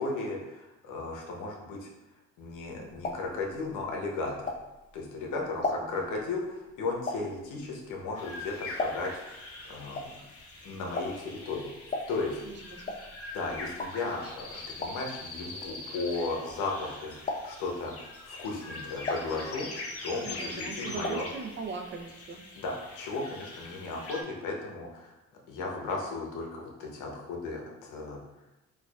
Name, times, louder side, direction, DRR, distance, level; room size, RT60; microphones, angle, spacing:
voice 1, 0.0-1.9 2.4-4.6 4.9-10.2 10.6-12.4 13.3-17.1 17.4-18.0 18.2-19.7 20.0-21.3 22.6-25.1 25.5-28.2, left 3 dB, 85° left, 0 dB, 0.8 m, -35 dB
sound 1, 2.5-5.0 5.4-9.3 9.6-16.9 17.2-17.8 18.3-20.0 20.3-21.4 21.6-21.7 22.0-22.1, left 2 dB, 30° left, 0.4 m, -37 dB
voice 2, 5.4-6.1 12.4-13.0 20.2-22.4, right 4 dB, 40° right, 4 dB, 0.5 m, -40 dB
sound 2, 8.2-24.2, left 2 dB, 50° left, 0.7 m, -43 dB
4.4 x 2.4 x 2.3 m, 0.99 s
cardioid pair, 90°, 30 cm